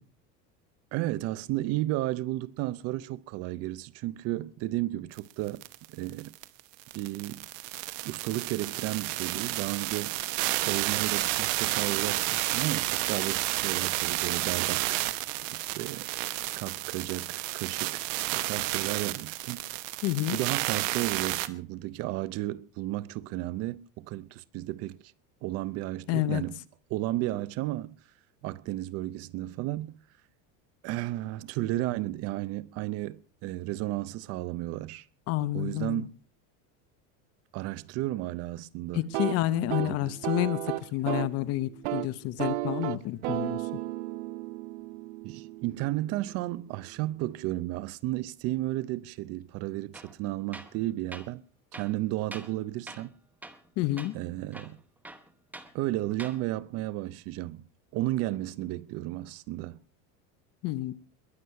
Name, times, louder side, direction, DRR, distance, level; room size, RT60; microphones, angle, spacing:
voice 1, 0.9-6.3 6.9-7.5 8.0-10.2 10.6-15.0 15.5-16.1 16.6-18.0 18.3-19.6 20.3-25.0 25.4-26.6 26.9-28.0 28.4-30.0 30.8-35.0 35.5-36.1 37.5-39.1 39.8-40.2 45.2-51.4 51.7-53.1 54.1-54.8 55.7-57.6 57.9-59.8, right 16 dB, 40° right, 0.6 m, -33 dB
sound 1, 5.2-5.3 5.5-21.5, right 18 dB, 85° right, 1.2 m, -31 dB
voice 2, 20.0-20.4 26.1-26.4 35.3-36.1 38.9-43.6 53.8-54.2 60.6-60.9, left 15 dB, 40° left, 0.7 m, -29 dB
sound 2, 39.0-41.4 41.7-42.1 42.4-46.2, right 18 dB, 70° right, 0.8 m, -34 dB
Tools, 49.9-50.1 50.5-50.8 51.1-51.3 51.7-52.6 52.9-53.1 53.4-53.7 54.0-54.1 54.5-55.7 56.1-56.4, right 2 dB, 5° right, 0.8 m, -45 dB
21.5 x 8.1 x 5.6 m
cardioid pair, 170°, 38 cm